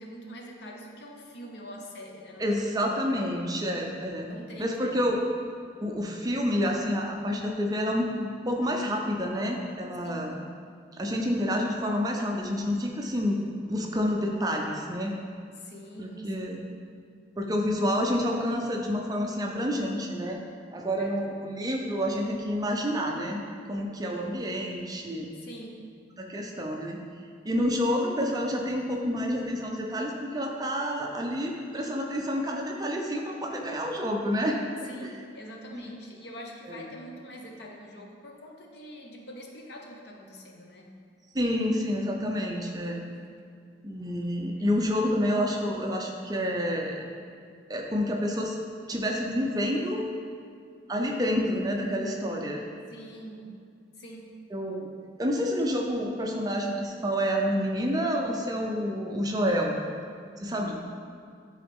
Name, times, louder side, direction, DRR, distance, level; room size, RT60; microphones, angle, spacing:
voice 1, 0.0-3.1 4.3-5.1 10.0-10.2 15.6-16.7 21.0-21.1 24.1-24.2 25.3-25.8 34.9-41.0 44.2-44.5 52.9-53.5 54.0-54.3 60.5-60.7, equal, 60° left, 0 dB, 0.9 m, -44 dB
voice 2, 2.4-4.3 4.6-5.2 5.8-10.4 10.9-15.1 16.0-16.6 17.4-20.4 20.7-25.3 26.2-27.0 27.4-35.1 35.7-35.9 36.7-36.9 41.3-43.0 43.8-47.0 47.7-48.6 48.9-50.1 50.9-52.6 54.5-54.9 55.2-59.8 60.4-60.7, equal, 20° right, 1 dB, 0.5 m, -29 dB
10.5 x 3.9 x 3.5 m, 2.3 s
head